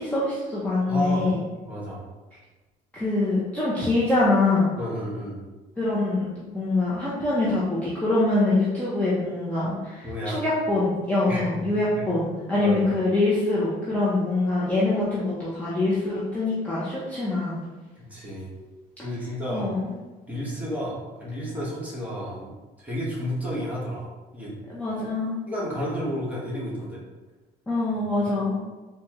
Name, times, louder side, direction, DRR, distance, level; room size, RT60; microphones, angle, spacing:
voice 1, 0.0-1.4 2.9-4.6 5.8-10.1 10.3-17.6 19.5-19.8 24.7-25.4 27.7-28.6, left 2 dB, 10° left, -9 dB, 0.7 m, -24 dB
voice 2, 0.9-1.3 1.6-2.0 4.8-5.4 10.0-10.4 11.2-11.6 11.9-12.0 12.6-12.9 17.9-18.5 19.0-19.7 20.3-22.5 22.8-24.6 25.5-27.0 28.2-28.3, equal, 10° right, -7 dB, 1.3 m, -31 dB
4.2 x 2.3 x 3.0 m, 1.2 s
cardioid pair, 110°, 17 cm